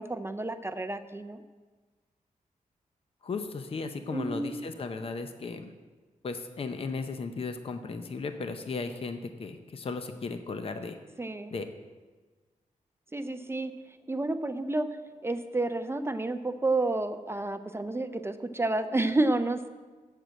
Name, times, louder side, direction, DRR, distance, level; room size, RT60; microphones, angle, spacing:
voice 1, 0.0-1.4 4.1-4.6 11.2-11.5 13.1-13.7 14.1-14.9 15.2-19.7, right 2 dB, 20° right, 9 dB, 0.4 m, -30 dB
voice 2, 3.2-5.6 6.2-11.0 11.5-11.7, left 4 dB, 40° left, 8 dB, 0.7 m, -35 dB
8.1 x 7.5 x 7.5 m, 1.3 s
wide cardioid pair, 155°, 14 cm